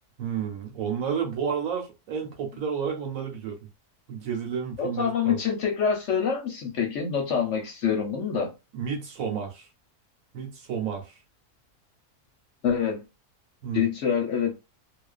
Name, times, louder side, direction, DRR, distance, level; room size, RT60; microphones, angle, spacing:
voice 1, 0.2-3.6 4.1-5.4 8.7-9.7 10.3-11.2 13.6-13.9, right 7 dB, 65° right, 1.1 m, -31 dB
voice 2, 4.8-8.5 12.6-13.1 13.7-14.5, left 7 dB, 60° left, 0.8 m, -26 dB
2.4 x 2.3 x 2.3 m
omnidirectional pair, 1.6 m